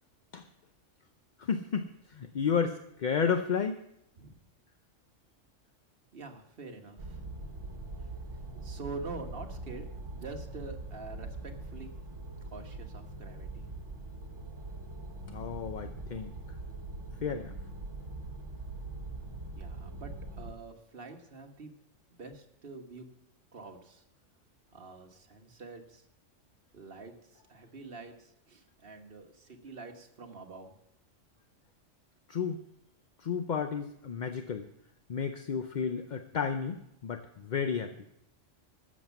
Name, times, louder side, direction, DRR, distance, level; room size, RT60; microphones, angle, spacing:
voice 1, 1.4-3.8 15.2-16.3 17.2-17.5 32.3-32.6 33.2-34.7 35.1-37.9, left 6 dB, 50° left, 8 dB, 0.6 m, -32 dB
voice 2, 6.1-7.2 8.5-9.9 10.1-11.9 12.5-13.7 19.6-20.1 20.4-21.7 22.1-23.1 23.5-24.0 24.7-26.0 26.7-30.7, right 3 dB, 50° right, 4 dB, 1.6 m, -46 dB
sound 1, 7.0-20.5, right 2 dB, 65° right, 1.6 m, -42 dB
13.5 x 7.4 x 7.1 m, 0.78 s
omnidirectional pair, 1.3 m